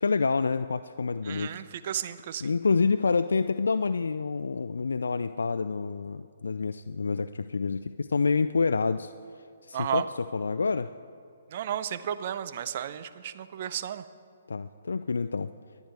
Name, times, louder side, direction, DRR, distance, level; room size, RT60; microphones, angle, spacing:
voice 1, 0.0-1.5 2.4-9.1 9.6-10.0 10.3-10.9 14.5-15.5, left 4 dB, 85° left, 12 dB, 0.3 m, -27 dB
voice 2, 1.2-2.5 9.7-10.1 11.5-14.1, right 10 dB, 50° right, 13 dB, 0.6 m, -33 dB
21.5 x 9.4 x 3.4 m, 2.3 s
hypercardioid pair, 145°, 0 cm